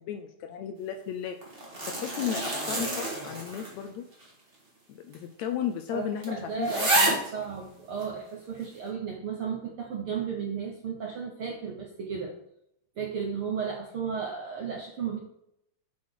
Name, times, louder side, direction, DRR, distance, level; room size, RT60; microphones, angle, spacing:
voice 1, 0.0-1.4 1.9-4.1 4.9-7.2, left 9 dB, 80° left, 6 dB, 1.7 m, -34 dB
sound 1, 1.4-3.9 4.2-4.3 5.1-5.2 5.6-5.7 6.2-6.3 6.6-7.3 8.0-8.1, right 2 dB, 25° right, 1.2 m, -28 dB
voice 2, 5.9-12.3 13.0-15.2, right 6 dB, 70° right, 0 dB, 1.3 m, -34 dB
8.4 x 4.0 x 4.8 m, 0.76 s
omnidirectional pair, 3.6 m